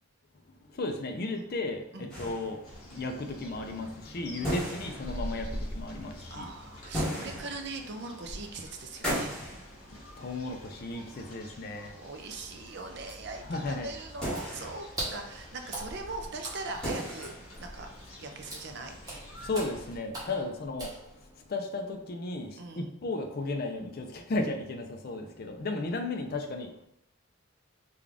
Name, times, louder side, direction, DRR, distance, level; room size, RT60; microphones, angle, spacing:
voice 1, 0.7-2.6 2.9-6.5 9.9-12.0 13.5-13.9 19.4-26.9, left 2 dB, 45° left, 5 dB, 0.4 m, -35 dB
sound 1, 2.1-3.2 4.1-4.2 4.4-5.7 6.7-8.4 9.0-10.6 10.9-11.0 12.6-12.7 13.1-13.2 14.2-15.4 16.4-16.5 16.7-17.7 18.0-18.1 18.5-18.6 19.4-19.6, equal, 5° left, 1.1 m, -36 dB
sound 2, 2.6-20.0, equal, 75° left, 1.4 m, -45 dB
voice 2, 4.4-4.7 6.3-9.3 11.3-11.4 12.0-17.3 17.6-17.9 18.2-19.3 20.3-20.6 22.6-22.9, right 3 dB, 50° right, 5 dB, 0.5 m, -41 dB
Water / Splash splatter, 14.3-21.5, right 1 dB, 15° right, 0.9 m, -43 dB
3.6 x 2.4 x 3.4 m, 0.74 s
head